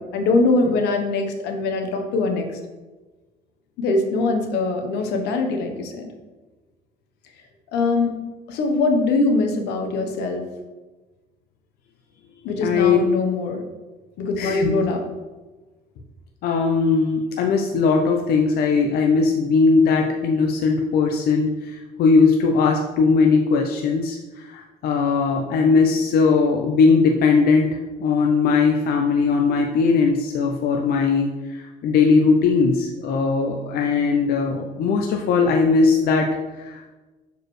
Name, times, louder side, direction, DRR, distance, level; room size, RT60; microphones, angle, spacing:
voice 1, 0.0-2.5 3.8-6.1 7.7-8.2 8.5-10.4 12.4-13.6 14.2-15.0, left 3 dB, 85° left, 4 dB, 1.0 m, -22 dB
voice 2, 12.6-13.0 14.4-14.8 16.4-36.9, left 4 dB, 65° left, 2 dB, 0.6 m, -19 dB
6.5 x 4.6 x 3.2 m, 1.2 s
cardioid pair, 110°, 17 cm